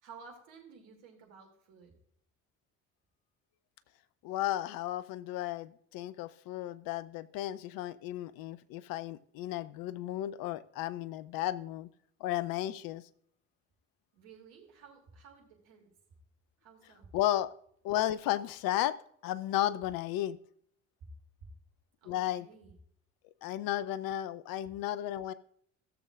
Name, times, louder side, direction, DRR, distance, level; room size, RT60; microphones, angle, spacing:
voice 1, 0.0-1.9 14.1-15.9 16.6-17.1 21.4-21.5 22.0-22.7, right 5 dB, 70° right, 1 dB, 2.9 m, -54 dB
voice 2, 4.2-11.9 12.2-13.0 17.1-17.5 17.8-19.0 19.2-20.4 22.1-22.5 23.4-25.3, left 13 dB, 65° left, 16 dB, 0.7 m, -34 dB
16.5 x 7.1 x 2.5 m, 0.65 s
hypercardioid pair, 55°, 38 cm